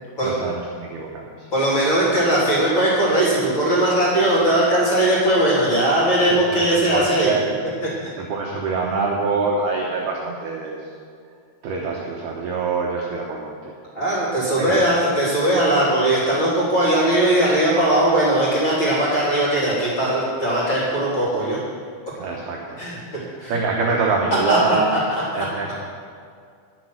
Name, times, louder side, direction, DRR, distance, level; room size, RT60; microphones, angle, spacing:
voice 1, 0.2-1.3 6.3-7.7 8.2-10.8 11.6-13.7 14.6-14.8 22.2-22.8 23.1-25.0 25.3-25.8, right 4 dB, 75° right, -1 dB, 2.3 m, -25 dB
voice 2, 1.5-7.3 13.9-21.6 22.8-23.0 23.4-23.6 24.5-25.2, right 1 dB, 30° left, -7 dB, 3.2 m, -19 dB
10.5 x 10.5 x 6.4 m, 2.2 s
omnidirectional pair, 6.0 m